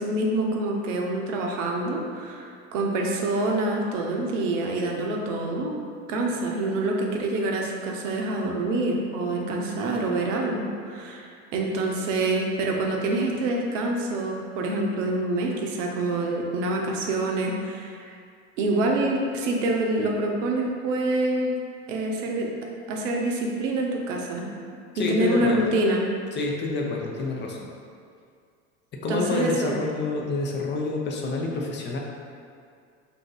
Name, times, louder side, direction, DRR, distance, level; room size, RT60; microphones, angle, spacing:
voice 1, 0.0-5.8 6.1-18.1 18.6-21.6 21.9-22.5 22.9-24.5 25.0-26.0 29.1-29.8, right 2 dB, 85° right, 0 dB, 0.6 m, -26 dB
voice 2, 24.9-25.7 26.3-27.7 28.9-32.0, left 3 dB, 30° left, 0 dB, 0.5 m, -28 dB
2.7 x 2.6 x 3.8 m, 2.2 s
supercardioid pair, 95°, 36 cm